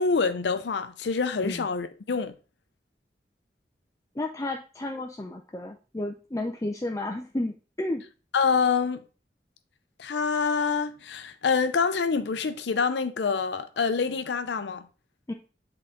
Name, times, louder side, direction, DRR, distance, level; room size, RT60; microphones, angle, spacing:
voice 1, 0.0-2.3 8.3-9.0 10.0-14.8, left 5 dB, 80° left, 0.5 m, -26 dB
voice 2, 4.2-8.0 15.3-15.4, left 1 dB, 20° left, 0.5 m, -32 dB
7.8 x 3.9 x 3.7 m
head